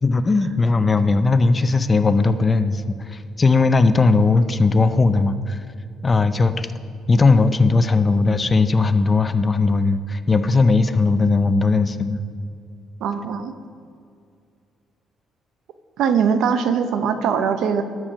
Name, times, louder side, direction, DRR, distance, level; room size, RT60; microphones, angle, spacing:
voice 1, 0.0-5.6 6.0-6.7 7.1-12.2, left 3 dB, 25° left, 11 dB, 0.4 m, -18 dB
voice 2, 13.0-13.5 16.0-17.8, right 7 dB, 80° right, 9 dB, 0.6 m, -21 dB
12.5 x 4.4 x 6.1 m, 2.3 s
cardioid pair, 135°, 0 cm